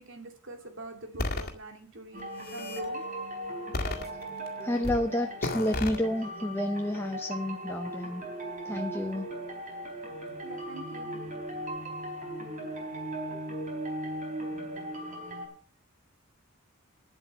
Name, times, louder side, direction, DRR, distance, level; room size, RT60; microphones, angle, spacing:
voice 1, 0.0-2.3 2.5-3.0 10.4-11.1, right 2 dB, 65° right, 5 dB, 2.5 m, -43 dB
sound 1, 1.2-1.5 2.2-2.8 3.7-4.5 4.8-5.0 5.4-6.0, left 2 dB, 50° left, 2.0 m, -32 dB
sound 2, 2.1-15.5, right 1 dB, 40° right, 4.2 m, -38 dB
voice 2, 3.9-4.2 4.6-8.2 8.6-9.3, left 1 dB, 10° left, 4 dB, 0.6 m, -30 dB
10.0 x 7.8 x 6.6 m, 0.39 s
head